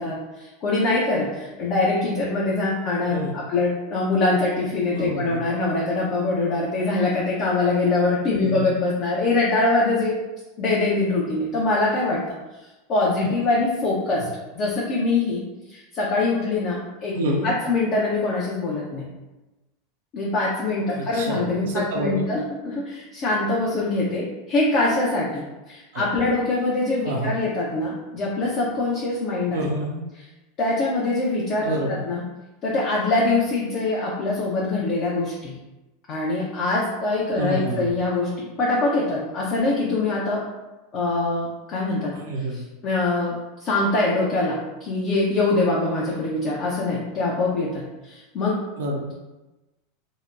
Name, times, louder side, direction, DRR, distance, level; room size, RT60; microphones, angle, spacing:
voice 1, 0.0-10.2 10.6-12.2 12.9-14.3 14.5-15.4 15.7-17.1 17.4-19.1 20.1-29.6 30.6-32.2 32.6-35.5 36.1-40.4 40.9-42.2 42.8-43.3 43.6-48.6, left 2 dB, 40° left, -4 dB, 0.5 m, -23 dB
voice 2, 4.9-5.5 8.4-8.7 14.2-14.3 17.1-17.5 20.9-22.3 25.9-26.0 27.0-27.4 29.5-30.0 31.6-32.0 37.4-37.9 42.1-42.6 48.8-49.1, right 1 dB, 65° right, -1 dB, 0.4 m, -28 dB
2.8 x 2.0 x 2.3 m, 1.1 s
figure-of-eight pair, 85°, 0 cm